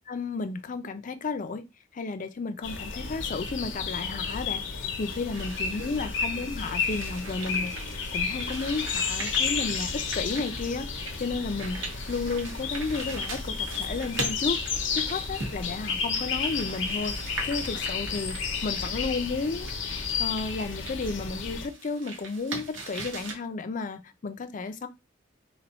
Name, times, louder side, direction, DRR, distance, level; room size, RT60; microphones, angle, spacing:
voice 1, 0.1-1.6 1.9-10.9 11.2-11.8 12.1-14.6 14.9-18.4 18.6-24.9, left 4 dB, 45° left, 0.5 m, -33 dB
sound 1, 2.6-21.7, left 5 dB, 70° left, 0.8 m, -32 dB
sound 2, 5.3-23.3, right 3 dB, 75° right, 1.3 m, -41 dB
4.0 x 2.3 x 4.2 m
head